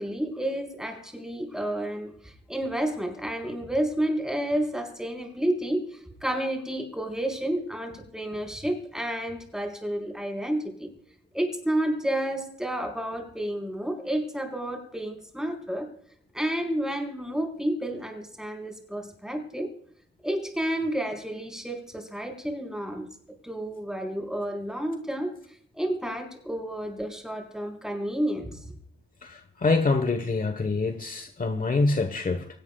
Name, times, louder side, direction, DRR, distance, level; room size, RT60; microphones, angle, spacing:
voice 1, 0.0-10.9 11.3-15.9 16.3-19.7 20.2-23.1 23.4-25.3 25.7-28.6, right 1 dB, 5° right, 4.8 m, -30 dB
voice 2, 29.2-32.5, left 3 dB, 40° left, 1.2 m, -25 dB
24.5 x 18.0 x 2.4 m
wide cardioid pair, 105°, 21 cm